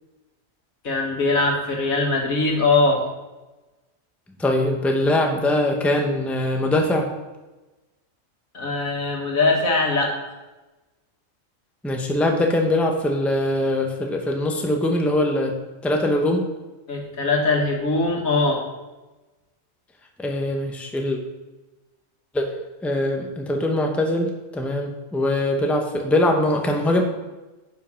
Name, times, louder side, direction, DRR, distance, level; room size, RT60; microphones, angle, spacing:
voice 1, 0.8-3.0 8.5-10.2 16.9-18.6, left 3 dB, 80° left, 0 dB, 2.2 m, -21 dB
voice 2, 4.4-7.1 11.8-15.6 15.8-16.5 20.2-21.2 22.3-22.5 22.8-27.0, left 1 dB, ahead, 2 dB, 0.9 m, -22 dB
9.8 x 5.6 x 5.7 m, 1.1 s
omnidirectional pair, 1.4 m